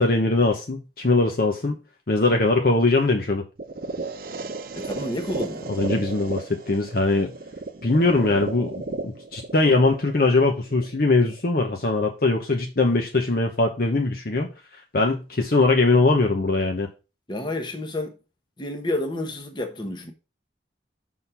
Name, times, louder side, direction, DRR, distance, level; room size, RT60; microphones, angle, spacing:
voice 1, 0.0-1.7 2.1-3.4 5.7-7.3 7.8-8.7 9.0-14.5 14.9-16.9, left 3 dB, 55° left, 0.9 m, -21 dB
sound 1, 3.6-11.6, right 3 dB, 50° right, 0.7 m, -34 dB
voice 2, 4.8-5.7 17.3-18.2 18.6-20.1, left 1 dB, 25° left, 1.0 m, -30 dB
6.3 x 3.8 x 5.5 m
head